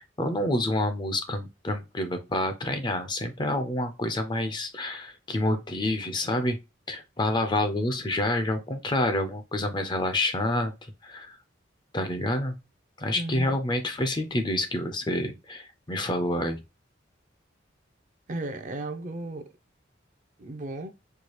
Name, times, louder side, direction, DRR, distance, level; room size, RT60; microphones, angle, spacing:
voice 1, 0.0-6.6 6.9-10.7 11.0-11.4 11.9-12.6 13.0-16.6, left 1 dB, 25° left, 0.5 m, -28 dB
voice 2, 13.1-13.6 18.3-19.5 20.4-20.9, right 2 dB, 40° right, 0.6 m, -35 dB
4.6 x 2.3 x 2.9 m
head